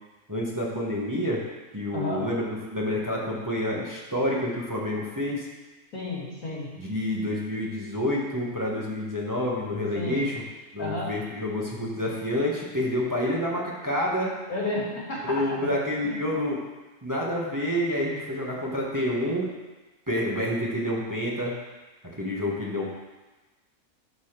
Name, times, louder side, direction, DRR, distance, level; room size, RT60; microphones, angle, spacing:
voice 1, 0.3-1.4 1.7-5.5 6.8-10.4 10.7-14.4 15.2-16.6 17.0-19.5 20.1-21.5 22.2-22.9, left 1 dB, 15° right, -4 dB, 1.4 m, -28 dB
voice 2, 1.9-2.3 5.9-6.7 9.9-10.2 10.8-11.1 14.5-15.4 16.0-16.2, left 2 dB, 90° left, -5 dB, 3.3 m, -31 dB
12.0 x 4.1 x 6.7 m, 1.2 s
omnidirectional pair, 1.5 m